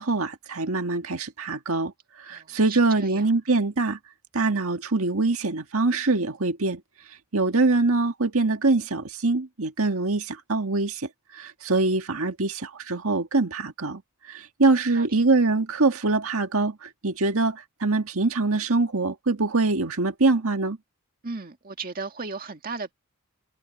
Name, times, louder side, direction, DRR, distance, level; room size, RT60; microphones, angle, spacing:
voice 1, 0.0-1.9 2.2-4.0 4.3-6.8 7.3-20.8, right 3 dB, 70° right, 1.9 m, -24 dB
voice 2, 2.3-3.3 14.9-15.1 21.2-22.9, right 4 dB, 40° right, 2.0 m, -36 dB
head